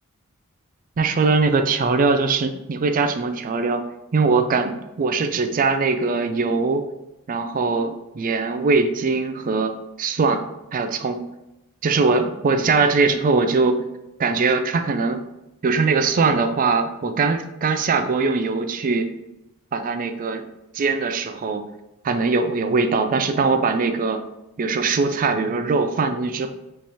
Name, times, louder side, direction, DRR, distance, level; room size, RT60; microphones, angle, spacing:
voice 1, 1.0-3.8 4.1-6.8 7.3-10.4 10.7-11.2 11.8-13.8 14.2-15.2 15.6-19.1 19.7-20.4 20.7-21.6 22.0-24.2 24.6-26.5, right 4 dB, 40° right, 8 dB, 0.4 m, -21 dB
5.3 x 3.2 x 2.8 m, 0.92 s
head